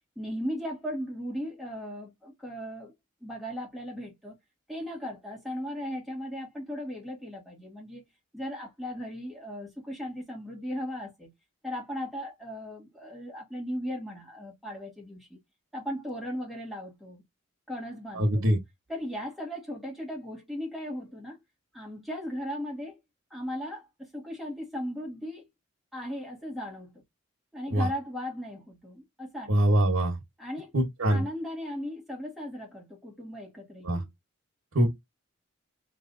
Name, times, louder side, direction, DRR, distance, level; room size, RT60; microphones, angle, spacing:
voice 1, 0.1-2.9 3.2-4.4 4.7-8.0 8.3-11.3 11.6-15.4 15.7-17.2 17.7-18.5 18.9-21.4 21.7-23.0 23.3-25.5 25.9-27.0 27.5-29.6 30.4-30.7 31.1-34.1, equal, ahead, 1.6 m, -37 dB
voice 2, 18.1-18.6 27.7-27.9 29.5-30.2 30.7-31.2 33.8-34.0 34.7-34.9, right 1 dB, 85° right, 1.2 m, -23 dB
4.8 x 3.2 x 2.6 m
head